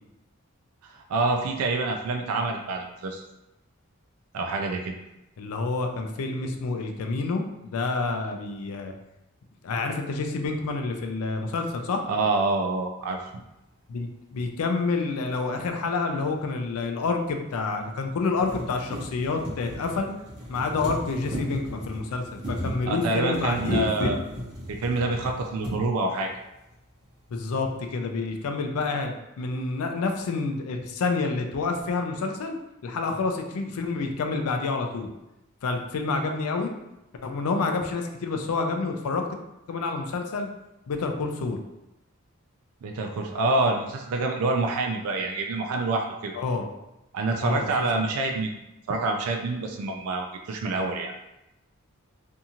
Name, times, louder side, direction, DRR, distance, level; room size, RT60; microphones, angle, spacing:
voice 1, 0.8-3.2 4.3-4.9 12.1-13.2 22.9-24.2 24.7-26.3 42.8-46.4 47.1-48.6 48.9-51.1, right 3 dB, 80° right, 3 dB, 0.3 m, -27 dB
voice 2, 5.4-8.9 9.6-12.0 13.9-20.1 20.5-24.2 27.3-32.6 32.8-35.1 35.6-36.7 37.2-39.3 39.7-40.5 40.9-41.6 46.3-46.7 47.4-47.6 47.9-48.0, left 3 dB, 80° left, 4 dB, 0.4 m, -28 dB
sound 1, 16.2-16.3 17.3-17.4 17.8-17.9 18.2-25.8 26.7-26.8 27.0-27.1, equal, 25° right, 0.9 m, -35 dB
2.6 x 2.4 x 2.8 m, 0.92 s
head